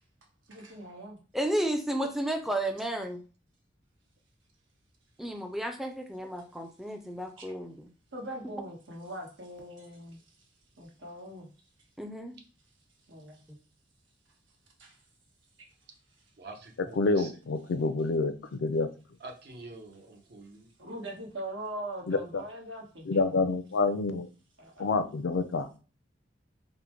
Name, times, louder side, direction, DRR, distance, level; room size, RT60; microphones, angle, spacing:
voice 1, 0.5-1.2 7.4-7.5 8.1-10.2 10.8-11.5 13.1-13.4 14.8-15.0 20.8-23.3 24.6-24.9, right 1 dB, 85° right, 1 dB, 1.2 m, -41 dB
voice 2, 1.3-3.2 5.2-7.9 12.0-12.3 13.5-13.6, right 1 dB, ahead, 4 dB, 0.4 m, -32 dB
voice 3, 16.4-17.3 19.2-20.7, right 2 dB, 60° right, 2 dB, 0.8 m, -46 dB
voice 4, 17.0-18.9 22.1-22.4 23.1-24.3 24.8-25.7, left 3 dB, 75° left, 11 dB, 0.4 m, -28 dB
3.7 x 2.1 x 4.4 m, 0.35 s
head